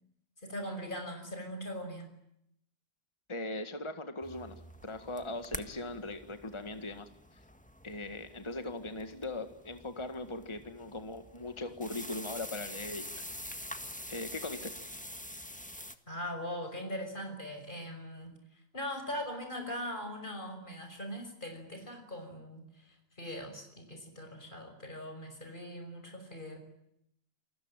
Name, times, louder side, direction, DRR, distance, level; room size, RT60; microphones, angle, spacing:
voice 1, 0.4-2.1 16.1-18.4 18.7-26.6, equal, 35° left, 5 dB, 6.3 m, -41 dB
voice 2, 3.3-7.1 7.8-13.2 14.1-14.7, left 2 dB, 20° left, 8 dB, 1.8 m, -40 dB
sound 1, 4.2-15.9, left 1 dB, 5° left, 1.6 m, -46 dB
29.0 x 21.0 x 9.1 m, 0.78 s
omnidirectional pair, 1.4 m